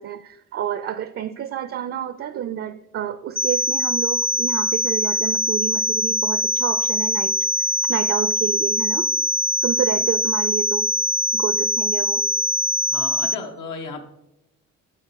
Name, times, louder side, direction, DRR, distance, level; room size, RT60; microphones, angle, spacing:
voice 1, 0.0-7.4 7.9-9.1 9.6-10.9 11.3-12.2, right 10 dB, 50° right, 13 dB, 0.4 m, -29 dB
sound 1, 3.4-13.4, left 1 dB, 20° left, 0.4 m, -23 dB
voice 2, 12.8-14.0, left 4 dB, 80° left, 4 dB, 1.2 m, -34 dB
12.0 x 4.5 x 4.6 m, 0.87 s
cardioid pair, 90°, 30 cm